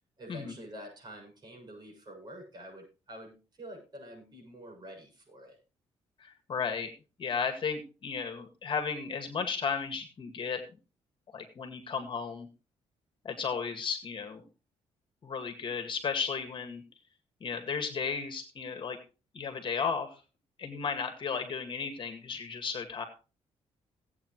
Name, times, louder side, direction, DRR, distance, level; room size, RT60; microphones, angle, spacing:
voice 1, 0.2-5.6, equal, 35° right, 1 dB, 7.3 m, -47 dB
voice 2, 6.2-6.9 7.2-10.6 11.3-12.5 13.2-14.5 15.2-16.8 17.4-19.0 19.3-20.2 20.6-23.0, left 6 dB, 45° left, 6 dB, 2.0 m, -34 dB
17.5 x 8.5 x 3.2 m, 0.33 s
cardioid pair, 115°, 12 cm